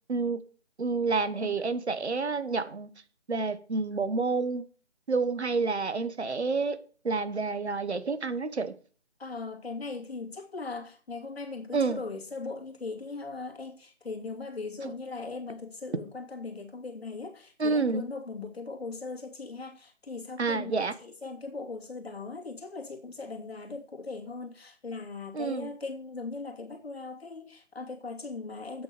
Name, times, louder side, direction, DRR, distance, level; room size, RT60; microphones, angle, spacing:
voice 1, 0.1-0.4 0.8-2.9 3.3-4.6 5.1-6.8 7.0-8.7 11.7-12.0 14.8-14.9 17.6-18.1 20.4-20.9 25.3-25.7, right 4 dB, 70° right, 1.3 m, -29 dB
voice 2, 9.2-28.8, left 3 dB, 60° left, 2.6 m, -39 dB
8.7 x 6.8 x 6.8 m
figure-of-eight pair, 155°, 35 cm